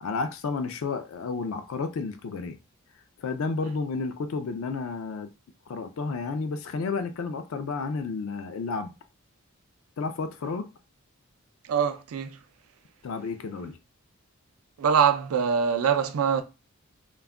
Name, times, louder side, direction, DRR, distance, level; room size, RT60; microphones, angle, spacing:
voice 1, 0.0-2.6 3.2-5.3 5.7-9.0 10.0-10.7 13.0-13.8, left 4 dB, 65° left, 0.3 m, -31 dB
voice 2, 11.6-12.4 14.8-16.4, right 7 dB, 75° right, 0.4 m, -23 dB
2.3 x 2.1 x 3.4 m
head